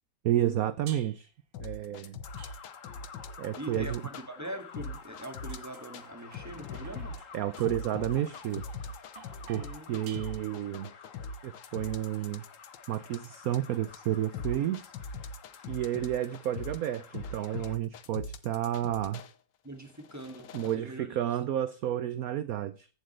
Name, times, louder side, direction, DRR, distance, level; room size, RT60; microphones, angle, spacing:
voice 1, 0.2-1.3 1.6-2.2 3.4-4.0 7.3-8.6 9.5-10.9 11.4-12.4 12.9-14.9 15.7-19.2 20.5-22.9, right 11 dB, 70° right, 0.9 m, -31 dB
sound 1, 0.9-1.4 2.4-3.0 4.0-10.8, right 8 dB, 85° right, 2.0 m, -54 dB
sound 2, 1.5-4.3 4.7-6.1 6.3-19.3 19.9-20.7, left 3 dB, 70° left, 1.6 m, -41 dB
sound 3, 2.2-17.8, left 6 dB, 45° left, 1.4 m, -51 dB
voice 2, 3.6-7.2 9.5-10.1 19.6-21.2, right 1 dB, 10° right, 1.9 m, -43 dB
15.5 x 7.8 x 3.3 m
omnidirectional pair, 2.1 m